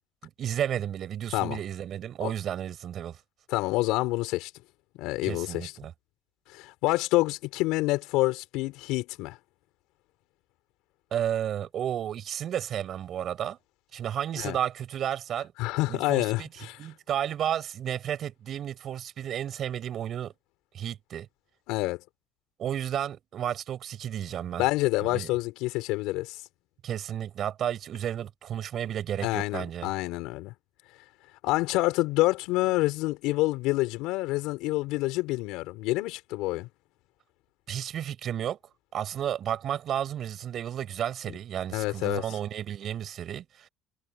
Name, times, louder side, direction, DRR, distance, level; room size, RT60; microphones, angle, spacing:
voice 1, 0.4-3.2 5.2-5.9 11.1-13.6 13.9-15.5 15.9-16.5 16.8-20.3 20.7-21.3 22.6-24.6 25.1-25.3 26.8-29.9 37.7-38.6 38.9-43.7, right 10 dB, 45° right, 7.0 m, -32 dB
voice 2, 3.5-4.5 5.0-5.7 6.5-9.4 14.4-14.6 15.6-16.8 21.7-22.0 24.6-26.4 29.2-30.5 31.4-36.7 41.7-42.2, left 20 dB, 85° left, 4.9 m, -27 dB
cardioid pair, 145°, 0 cm